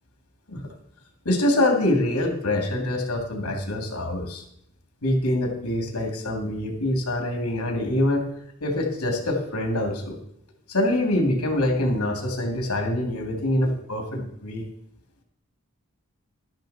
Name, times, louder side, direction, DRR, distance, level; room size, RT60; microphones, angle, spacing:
voice 1, 1.2-4.4 5.0-8.3 8.6-10.2 10.7-14.6, left 1 dB, 80° left, 3 dB, 2.8 m, -25 dB
12.5 x 10.5 x 4.3 m, 0.74 s
head